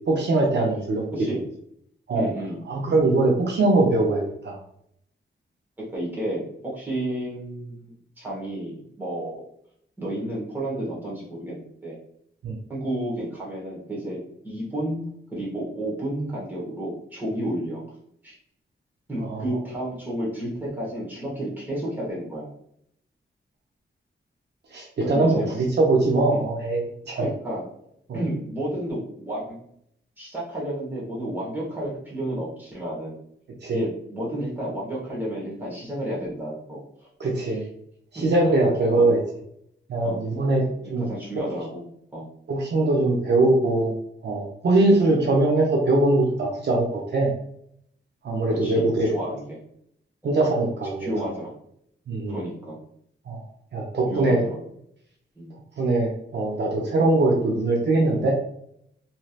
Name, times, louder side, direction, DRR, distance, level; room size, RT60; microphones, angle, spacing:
voice 1, 0.1-1.1 2.1-2.3 2.7-4.6 12.4-12.6 19.2-19.4 24.7-26.8 27.1-27.3 28.1-28.2 33.6-33.8 37.2-37.6 38.1-39.2 39.9-40.6 40.9-41.1 42.5-43.9 44.2-47.3 48.2-49.1 50.2-51.2 52.1-52.3 53.3-53.4 53.7-54.4 55.8-58.4, right 2 dB, 60° right, -1 dB, 0.6 m, -22 dB
voice 2, 2.1-2.6 5.8-9.4 10.0-12.0 12.7-15.0 15.3-18.0 18.2-18.3 19.1-22.5 25.0-25.5 26.3-26.5 27.2-27.7 28.1-29.6 30.2-33.2 33.7-36.8 37.4-37.6 38.1-38.2 39.0-39.1 40.0-40.2 41.0-41.8 42.1-42.3 43.4-43.5 44.8-45.1 48.6-49.6 50.2-50.4 51.0-51.5 52.3-52.8 54.1-54.6 55.4-55.6, right 1 dB, 10° right, -6 dB, 1.2 m, -31 dB
3.1 x 2.7 x 2.4 m, 0.70 s
wide cardioid pair, 175°, 20 cm